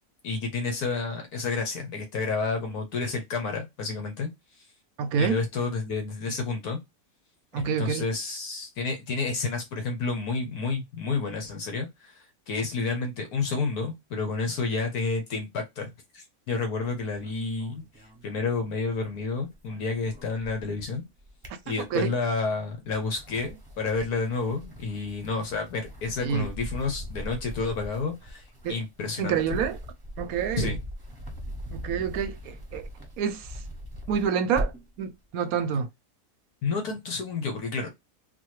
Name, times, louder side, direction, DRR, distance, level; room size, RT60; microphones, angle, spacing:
voice 1, 0.2-4.3 4.6-4.7 5.2-6.8 7.6-17.8 18.2-21.0 21.7-29.6 30.6-30.8 36.6-37.9, left 4 dB, 70° left, 1.3 m, -30 dB
voice 2, 5.0-5.4 7.5-8.0 21.9-22.1 26.2-26.5 28.6-28.8 29.2-29.8 30.2-30.7 31.7-32.9 33.2-33.6 34.1-34.7 35.0-35.9, right 7 dB, 70° right, 1.0 m, -27 dB
sound 1, 16.8-18.9 19.2-20.8 21.2-22.2 22.7-35.0, equal, 20° right, 0.7 m, -40 dB
4.0 x 2.3 x 3.1 m
omnidirectional pair, 1.7 m